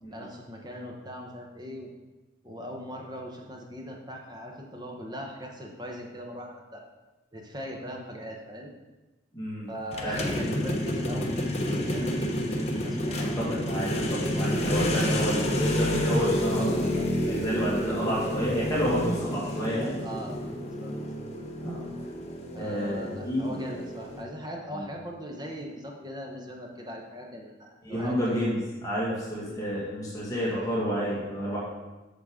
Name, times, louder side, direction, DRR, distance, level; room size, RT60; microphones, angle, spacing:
voice 1, 0.1-1.9 2.4-6.8 7.3-8.7 9.7-11.5 11.9-13.3 20.0-20.9 22.5-28.3, equal, 20° right, 0 dB, 1.0 m, -40 dB
voice 2, 9.3-9.7 10.0-10.4 13.1-20.0 21.6-21.8 22.5-23.6 24.7-24.8 27.9-31.6, equal, 20° left, -7 dB, 1.9 m, -30 dB
sound 1, 9.9-24.2, equal, 35° left, 0.9 m, -29 dB
7.8 x 6.5 x 3.7 m, 1.1 s
head